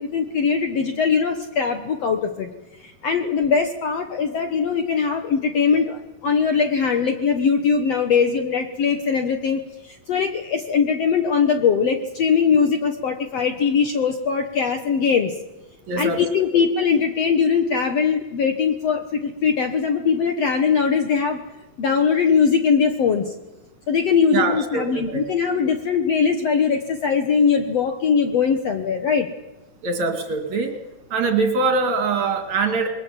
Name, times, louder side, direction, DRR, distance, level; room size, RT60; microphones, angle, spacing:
voice 1, 0.0-2.5 2.8-15.3 16.0-21.4 21.8-23.3 23.9-29.3, left 6 dB, 60° left, 6 dB, 1.8 m, -21 dB
voice 2, 15.9-16.2 16.6-16.7 24.3-25.2 29.8-30.7 31.1-32.9, right 4 dB, 55° right, 5 dB, 3.5 m, -23 dB
27.5 x 21.5 x 7.5 m, 1.0 s
omnidirectional pair, 4.2 m